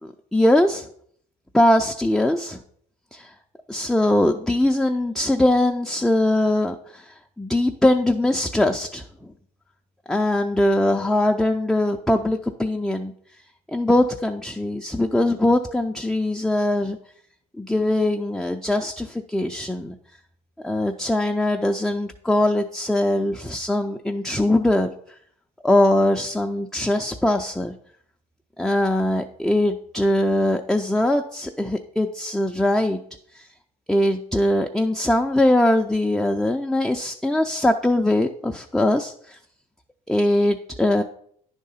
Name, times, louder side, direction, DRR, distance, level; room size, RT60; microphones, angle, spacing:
voice 1, 0.0-0.9 1.5-2.6 3.1-3.3 3.7-9.0 10.1-13.1 13.7-17.0 17.6-19.9 20.6-24.9 25.6-27.7 28.6-33.0 33.4-33.5 33.9-39.4 40.1-41.0, left 1 dB, ahead, 3 dB, 0.4 m, -21 dB
9.7 x 3.7 x 5.6 m, 0.64 s
cardioid pair, 110°, 17 cm